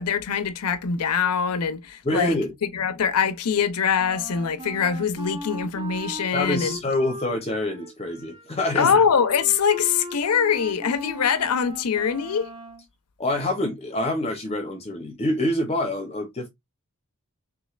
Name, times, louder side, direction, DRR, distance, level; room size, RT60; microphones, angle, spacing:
voice 1, 0.0-6.8 8.7-12.5, left 6 dB, 85° left, 0.6 m, -23 dB
voice 2, 2.0-2.5 6.3-8.9 13.2-16.5, left 1 dB, 30° left, 0.7 m, -26 dB
Wind instrument woodwind instrument, 4.0-12.9, equal, 20° right, 0.5 m, -38 dB
3.6 x 3.1 x 2.3 m
head